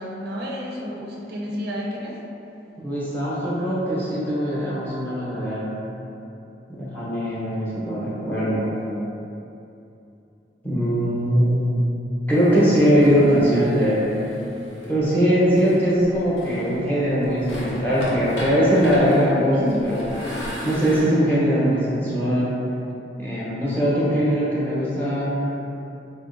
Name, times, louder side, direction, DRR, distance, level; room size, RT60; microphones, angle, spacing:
voice 1, 0.0-2.2 19.5-19.9, equal, 55° right, -4 dB, 0.5 m, -30 dB
voice 2, 2.8-5.7 6.7-8.7 10.6-11.8 12.3-14.1 14.9-19.6 19.8-20.1 20.6-22.6 23.2-25.3, equal, 10° left, -10 dB, 0.7 m, -21 dB
sound 1, 12.3-14.9 15.6-16.9 17.2-21.0, equal, 80° left, 0.7 m, -34 dB
4.1 x 2.3 x 2.5 m, 2.8 s
head